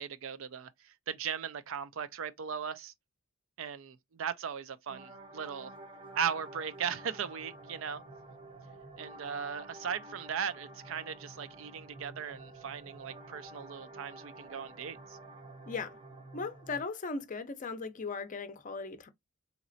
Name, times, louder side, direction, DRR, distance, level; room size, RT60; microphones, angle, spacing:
voice 1, 0.0-2.9 3.6-5.7 6.2-8.0 9.0-15.2, right 7 dB, 65° right, 0.4 m, -38 dB
sound 1, 4.9-16.8, right 2 dB, 25° right, 0.6 m, -50 dB
voice 2, 15.7-16.0 16.3-19.1, left 4 dB, 40° left, 0.5 m, -38 dB
4.0 x 2.9 x 2.6 m
head